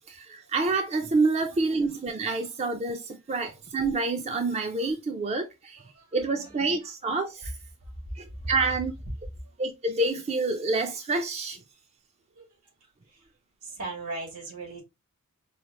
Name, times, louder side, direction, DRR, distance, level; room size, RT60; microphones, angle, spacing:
voice 1, 0.1-5.8 6.1-7.5 8.2-8.9 9.6-11.6, right 3 dB, 30° right, 0.4 m, -28 dB
voice 2, 1.5-1.8 2.4-2.5 5.8-6.9 7.4-7.5 8.3-8.5 12.4-12.6 13.1-13.2 13.6-14.8, right 2 dB, 80° right, 2.3 m, -40 dB
4.8 x 2.4 x 2.9 m
head